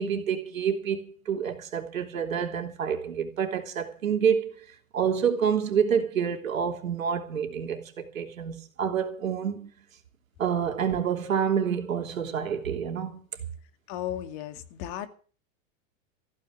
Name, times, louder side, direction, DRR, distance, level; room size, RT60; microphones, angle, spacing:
voice 1, 0.0-4.6 4.9-9.7 10.4-13.2, right 7 dB, 80° right, 3.1 m, -28 dB
voice 2, 13.9-15.1, left 11 dB, 50° left, 2.3 m, -35 dB
15.5 x 9.3 x 7.8 m
hypercardioid pair, 105°, 40 cm